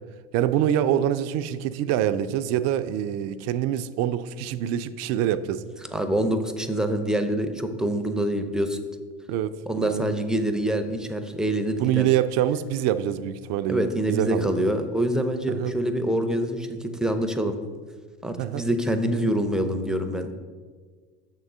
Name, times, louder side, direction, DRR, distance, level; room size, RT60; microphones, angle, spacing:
voice 1, 0.3-5.6 9.3-10.1 11.8-14.6 15.5-15.8 18.4-18.6, right 11 dB, 55° right, 12 dB, 0.4 m, -25 dB
voice 2, 5.9-8.8 9.7-12.1 13.7-17.6 18.2-20.3, right 1 dB, ahead, 7 dB, 0.6 m, -25 dB
6.4 x 3.7 x 6.0 m, 1.5 s
hypercardioid pair, 85°, 32 cm